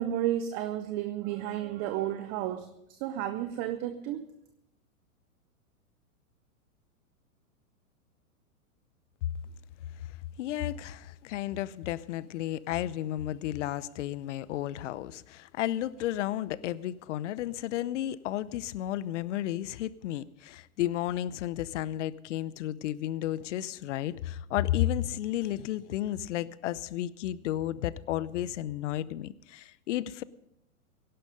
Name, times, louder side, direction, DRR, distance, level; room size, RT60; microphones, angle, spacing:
voice 1, 0.0-2.7 3.0-4.2, right 12 dB, 20° right, 0.5 m, -32 dB
voice 2, 10.4-30.2, left 13 dB, 55° left, 0.7 m, -32 dB
17.0 x 11.5 x 5.2 m
hypercardioid pair, 130°, 43 cm